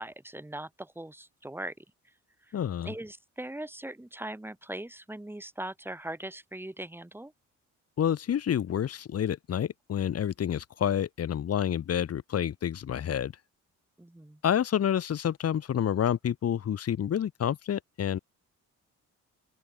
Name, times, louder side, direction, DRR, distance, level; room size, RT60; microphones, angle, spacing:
voice 1, 0.0-1.7 2.5-2.6 2.8-7.3 14.0-14.4, right 1 dB, 5° right, 5.1 m, -40 dB
voice 2, 2.5-2.9 8.0-13.3 14.4-18.2, left 9 dB, 55° left, 2.2 m, -28 dB
open air
cardioid pair, 115°, 30 cm